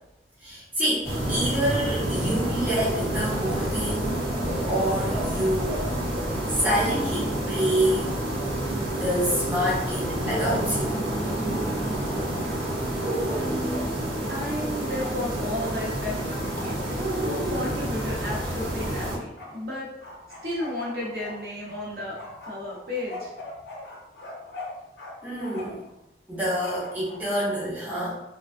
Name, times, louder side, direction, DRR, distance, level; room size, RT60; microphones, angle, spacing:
voice 1, 0.4-4.3 4.7-5.9 6.5-8.1 8.9-11.0 25.2-25.8 26.3-28.2, equal, 10° right, -9 dB, 0.6 m, -27 dB
sound 1, 1.0-19.2, right 1 dB, 85° right, 1.1 m, -28 dB
voice 2, 13.0-13.9 14.3-16.8 17.1-19.9 20.4-22.2 22.4-23.3, left 1 dB, 55° right, -5 dB, 0.7 m, -33 dB
Bark, 14.6-15.2 15.5-19.5 20.0-21.8 22.1-25.1 25.4-25.9 26.5-27.5, left 2 dB, 75° left, 0.7 m, -41 dB
2.4 x 2.2 x 2.4 m, 0.90 s
head